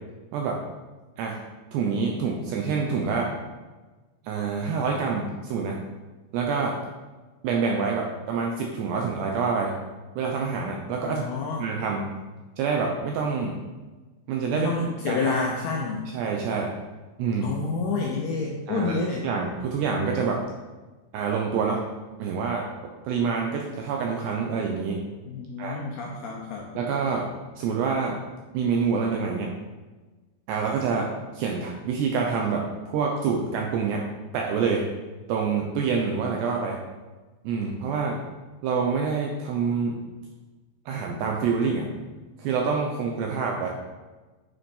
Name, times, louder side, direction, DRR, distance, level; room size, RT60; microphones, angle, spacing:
voice 1, 1.7-3.3 4.2-5.8 6.3-6.8 7.4-9.7 10.2-11.2 11.6-12.1 12.6-13.6 14.3-14.7 15.1-15.4 16.1-16.7 17.2-17.5 18.7-18.9 19.2-20.4 21.1-21.8 22.2-22.7 23.0-25.0 25.6-25.8 26.8-27.3 27.6-28.2 28.5-29.5 30.5-31.1 31.3-34.0 34.3-34.8 35.3-36.8 37.4-38.2 38.6-40.0 40.9-41.9 42.4-43.7, right 5 dB, 75° right, 0 dB, 2.6 m, -26 dB
voice 2, 11.0-11.7 14.5-16.0 17.4-19.3 25.3-26.8, left 4 dB, 80° left, 0 dB, 2.3 m, -29 dB
9.6 x 6.7 x 5.5 m, 1.2 s
omnidirectional pair, 5.8 m